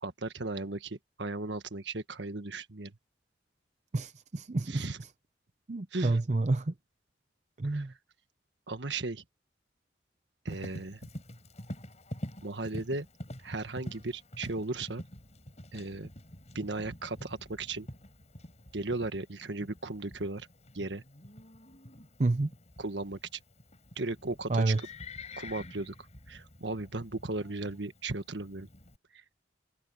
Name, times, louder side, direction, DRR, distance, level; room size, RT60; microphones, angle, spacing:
voice 1, 0.0-2.9 4.7-5.0 5.9-6.2 7.6-7.9 8.7-9.2 10.4-11.0 12.4-13.1 13.4-15.0 15.7-16.1 16.5-17.9 18.7-20.5 20.7-21.0 22.8-23.2 24.0-24.7 25.4-25.9 26.3-28.7, right 2 dB, 75° right, 1.6 m, -36 dB
voice 2, 3.9-4.9 5.7-6.7 7.6-7.9 22.2-22.5 24.5-24.8, right 2 dB, 40° right, 0.6 m, -29 dB
Livestock farm animals working animals, 10.5-29.0, left 1 dB, 35° left, 7.2 m, -47 dB
head